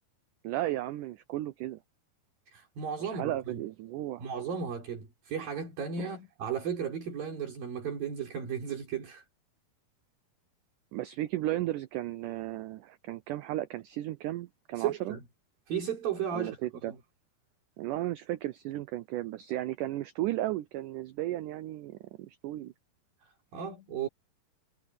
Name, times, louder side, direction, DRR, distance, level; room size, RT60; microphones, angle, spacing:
voice 1, 0.4-1.8 3.0-4.3 6.0-6.1 10.9-15.2 16.3-16.9 17.8-22.7, right 15 dB, 90° right, 1.8 m, -34 dB
voice 2, 2.5-3.6 4.2-9.2 14.8-15.2 15.7-16.6 16.9-17.0 23.2-24.1, right 7 dB, 65° right, 6.1 m, -35 dB
omnidirectional pair, 4.5 m